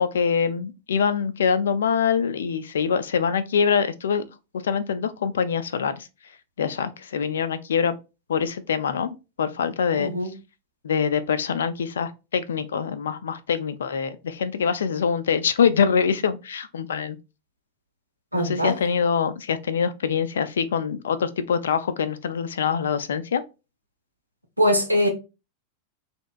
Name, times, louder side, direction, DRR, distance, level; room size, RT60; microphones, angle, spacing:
voice 1, 0.0-4.2 4.5-6.1 6.6-8.0 8.3-10.1 10.8-17.2 18.3-23.4, left 6 dB, 65° left, 0.3 m, -24 dB
voice 2, 9.9-10.3 18.3-18.8 24.6-25.1, equal, 85° right, 0.5 m, -22 dB
2.7 x 2.1 x 2.4 m
figure-of-eight pair, 90°, 0 cm